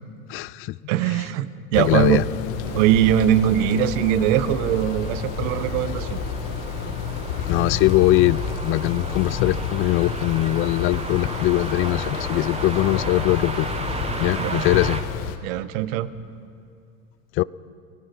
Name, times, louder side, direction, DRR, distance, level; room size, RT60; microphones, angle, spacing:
voice 1, 0.3-0.8 1.8-2.2 7.5-13.7 14.2-15.0 17.4-17.5, left 17 dB, 30° left, 21 dB, 0.4 m, -21 dB
voice 2, 0.9-2.2 2.7-6.2 14.4-14.7 15.4-16.1, right 11 dB, 60° right, 14 dB, 1.3 m, -21 dB
sound 1, 1.7-15.4, left 7 dB, 65° left, 2.1 m, -30 dB
sound 2, 2.6-15.0, right 3 dB, 15° right, 1.5 m, -34 dB
29.0 x 18.0 x 5.4 m, 2.5 s
hypercardioid pair, 105°, 43 cm